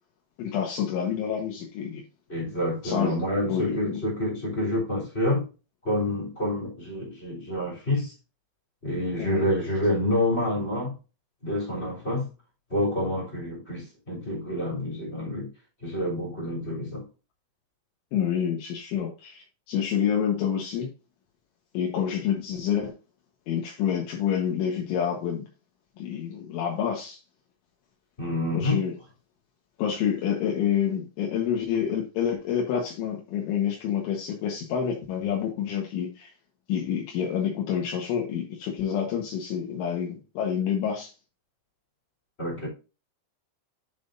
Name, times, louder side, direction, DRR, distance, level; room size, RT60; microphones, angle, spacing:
voice 1, 0.4-2.0 2.8-3.2 3.5-4.0 9.2-9.5 18.1-20.9 21.7-22.9 23.5-25.5 26.0-27.2 28.5-28.9 29.8-36.3 36.7-41.1, left 8 dB, 75° left, 3.6 m, -28 dB
voice 2, 2.3-5.5 5.8-8.1 8.8-10.9 11.4-12.2 12.7-15.5 15.8-17.0 28.2-28.8 42.4-42.7, left 1 dB, 15° left, 2.9 m, -28 dB
11.0 x 6.1 x 2.6 m
omnidirectional pair, 5.7 m